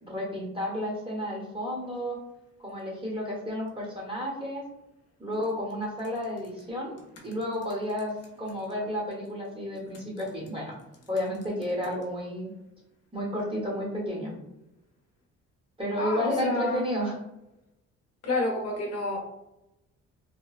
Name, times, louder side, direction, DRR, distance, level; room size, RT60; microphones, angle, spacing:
voice 1, 0.0-2.2 2.6-4.6 5.2-6.9 7.2-8.1 8.4-10.7 11.1-12.5 13.1-14.3 15.8-17.1, equal, 20° right, -3 dB, 1.0 m, -31 dB
voice 2, 16.0-16.8 18.2-19.2, left 2 dB, 55° left, -1 dB, 0.7 m, -29 dB
3.0 x 2.2 x 2.4 m, 0.89 s
cardioid pair, 95°, 29 cm